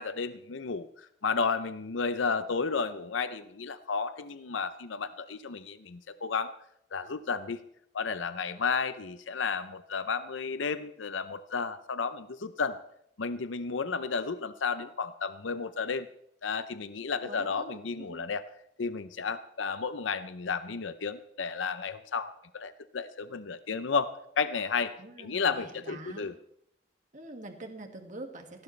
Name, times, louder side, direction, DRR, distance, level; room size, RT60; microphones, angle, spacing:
voice 1, 0.0-6.5 6.9-7.6 7.9-12.8 13.2-16.1 16.4-18.4 18.8-26.3, left 5 dB, 80° left, 12 dB, 0.6 m, -32 dB
voice 2, 17.0-18.3 25.0-26.3 27.1-28.6, right 2 dB, 40° right, 4 dB, 2.0 m, -45 dB
18.5 x 16.0 x 3.3 m, 0.74 s
head